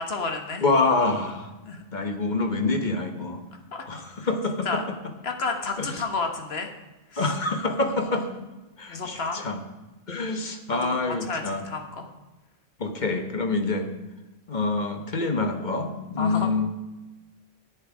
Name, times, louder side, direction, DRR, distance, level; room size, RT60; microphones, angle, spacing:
voice 1, 0.0-0.6 1.6-1.8 3.7-3.8 4.6-4.8 5.2-6.7 7.1-7.3 8.9-9.4 10.7-12.1 16.2-16.5, left 4 dB, 70° left, 4 dB, 1.5 m, -31 dB
voice 2, 0.6-1.5 1.9-3.4 3.9-4.8 5.8-6.0 7.2-8.3 8.8-9.6 10.1-11.6 12.8-13.9 14.5-16.7, left 3 dB, 45° left, 6 dB, 1.2 m, -26 dB
11.0 x 8.4 x 4.9 m, 1.1 s
omnidirectional pair, 1.1 m